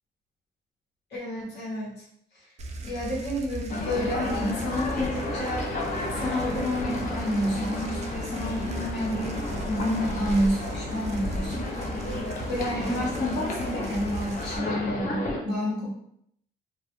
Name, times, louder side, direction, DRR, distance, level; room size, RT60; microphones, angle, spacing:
voice 1, 1.1-2.0 2.4-2.5 2.8-5.7 6.1-11.8 12.5-15.9, equal, 65° left, -4 dB, 0.9 m, -30 dB
sound 1, 2.6-14.6, right 2 dB, 35° right, 0.4 m, -38 dB
sound 2, 3.7-15.4, left 2 dB, 45° left, 0.5 m, -32 dB
2.2 x 2.0 x 2.9 m, 0.71 s
cardioid pair, 95°, 19 cm